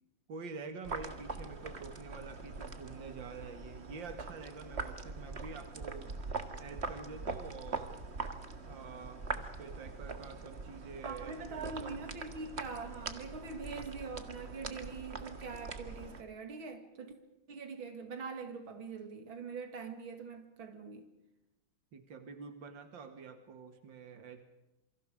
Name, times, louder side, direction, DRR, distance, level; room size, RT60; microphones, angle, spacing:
voice 1, 0.3-6.2 6.6-8.0 8.6-12.0 21.9-24.4, right 4 dB, 70° right, 2.7 m, -47 dB
sound 1, 0.8-16.2, right 4 dB, 35° right, 1.8 m, -43 dB
voice 2, 11.0-17.1 17.5-21.1, right 4 dB, 90° right, 3.0 m, -43 dB
28.0 x 24.5 x 5.1 m
omnidirectional pair, 2.2 m